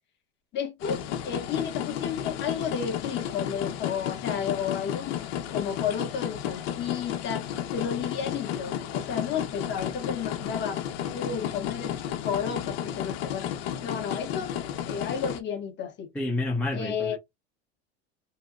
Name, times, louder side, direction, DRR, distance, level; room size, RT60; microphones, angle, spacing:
voice 1, 0.5-5.2 5.5-10.8 11.1-13.5 13.8-14.5 14.9-16.1 16.7-17.2, left 7 dB, 35° left, 0.9 m, -32 dB
sound 1, 0.8-15.4, left 10 dB, 70° left, 0.8 m, -33 dB
voice 2, 16.1-17.2, left 2 dB, 5° left, 0.7 m, -29 dB
2.9 x 2.2 x 3.6 m
supercardioid pair, 135°, 33 cm